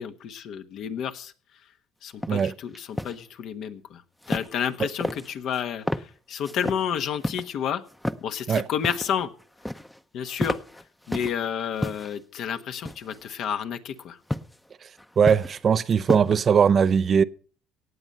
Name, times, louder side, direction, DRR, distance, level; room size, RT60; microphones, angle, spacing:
voice 1, 0.0-1.3 1.6-1.7 2.0-4.0 4.3-7.8 8.2-9.3 10.1-14.2, left 8 dB, 60° left, 1.2 m, -31 dB
sound 1, 2.2-2.4 2.7-3.2 4.2-4.7 5.0-5.6 5.9-6.1 6.4-6.8 7.2-7.4 7.9-8.2 8.5-9.1 9.4-10.0 10.3-11.4 11.8-12.2 12.8-13.3 14.3-14.5 15.0-15.6 15.9-16.4, left 1 dB, 5° left, 0.8 m, -31 dB
voice 2, 15.2-17.2, right 7 dB, 40° right, 0.6 m, -20 dB
18.0 x 7.6 x 5.5 m
supercardioid pair, 95°, 0 cm